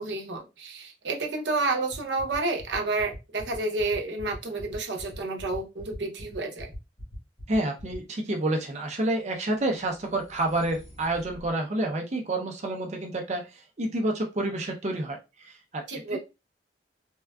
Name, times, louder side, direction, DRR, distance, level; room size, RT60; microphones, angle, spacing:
voice 1, 0.0-6.7 15.9-16.2, right 3 dB, 90° right, 3 dB, 0.7 m, -30 dB
sound 1, 1.9-8.0, left 2 dB, 40° left, 1.1 m, -44 dB
voice 2, 7.5-13.5 13.8-15.9 16.1-16.2, right 1 dB, 40° right, 3 dB, 0.5 m, -29 dB
sound 2, 8.6-11.5, equal, 70° left, 1.4 m, -51 dB
3.5 x 2.3 x 2.2 m, 0.27 s
head